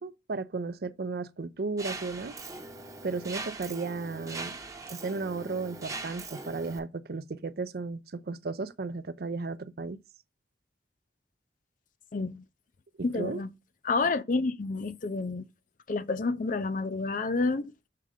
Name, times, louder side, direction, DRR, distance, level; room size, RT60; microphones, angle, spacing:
voice 1, 0.0-2.3 3.0-4.6 4.9-10.0 13.1-13.4, right 3 dB, 60° right, 0.5 m, -34 dB
Mechanisms, 1.8-6.8, right 3 dB, 20° right, 0.8 m, -41 dB
voice 2, 12.1-12.4 13.0-13.5 13.8-15.5 15.9-17.7, left 3 dB, 50° left, 0.5 m, -29 dB
6.7 x 3.8 x 4.9 m
head